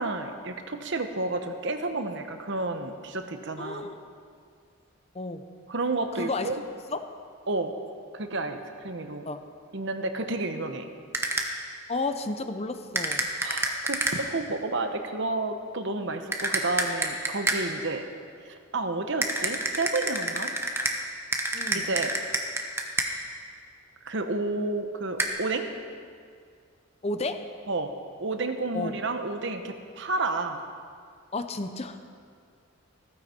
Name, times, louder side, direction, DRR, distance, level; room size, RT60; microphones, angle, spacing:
voice 1, 0.0-3.9 5.7-6.6 7.5-7.7 8.1-9.3 9.7-10.9 13.4-18.0 18.4-20.5 21.7-22.1 24.0-25.7 27.7-27.9 28.2-30.6, right 2 dB, 55° right, 7 dB, 1.0 m, -31 dB
voice 2, 3.6-4.0 5.1-5.4 6.1-6.6 6.9-7.0 9.3-9.4 11.9-13.3 21.5-21.9 27.0-27.4 28.7-29.0 31.3-32.0, left 2 dB, 30° left, 8 dB, 0.8 m, -32 dB
sound 1, 11.1-11.7 13.0-14.4 16.3-17.9 19.2-23.3 25.2-25.3, right 2 dB, 10° right, 1.0 m, -29 dB
15.5 x 15.0 x 4.5 m, 2.2 s
head